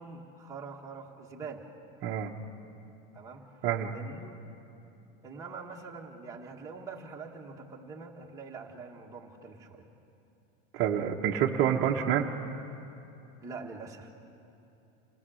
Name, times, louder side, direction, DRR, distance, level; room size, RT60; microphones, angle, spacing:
voice 1, 0.0-1.7 3.1-3.7 3.9-4.4 5.2-9.8 13.4-14.1, right 4 dB, 10° right, -1 dB, 1.4 m, -44 dB
voice 2, 3.6-3.9 10.7-12.6, right 9 dB, 35° right, -2 dB, 0.9 m, -28 dB
27.5 x 18.0 x 6.3 m, 2.8 s
supercardioid pair, 165°, 30 cm